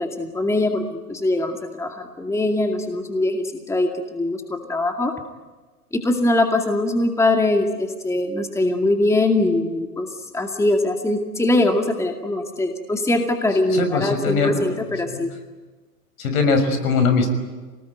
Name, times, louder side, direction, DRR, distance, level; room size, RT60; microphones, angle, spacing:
voice 1, 0.0-5.1 5.9-10.1 10.3-15.3, left 2 dB, 5° left, 4 dB, 2.2 m, -22 dB
voice 2, 13.7-14.7 15.1-15.2 16.2-17.3, left 4 dB, 65° left, 8 dB, 6.2 m, -21 dB
28.0 x 19.5 x 9.4 m, 1.3 s
hypercardioid pair, 110°, 45 cm